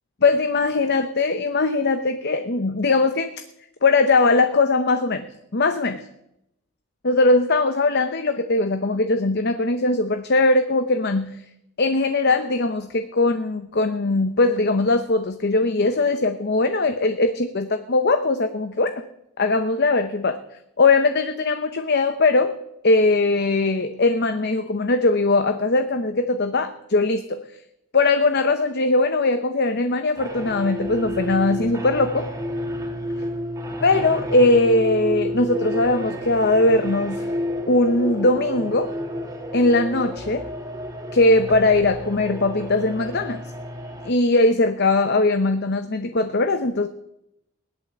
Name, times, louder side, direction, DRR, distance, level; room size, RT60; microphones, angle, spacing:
voice 1, 0.2-3.3 3.8-5.3 5.5-6.0 7.0-11.3 11.8-18.9 19.4-20.4 20.8-22.5 22.8-27.4 27.9-32.3 33.8-37.3 37.7-38.9 39.5-40.4 41.1-43.4 44.0-46.9, left 2 dB, 50° left, 8 dB, 0.8 m, -20 dB
sound 1, 30.1-44.1, equal, 15° right, 1.7 m, -30 dB
17.5 x 11.0 x 7.3 m, 0.83 s
head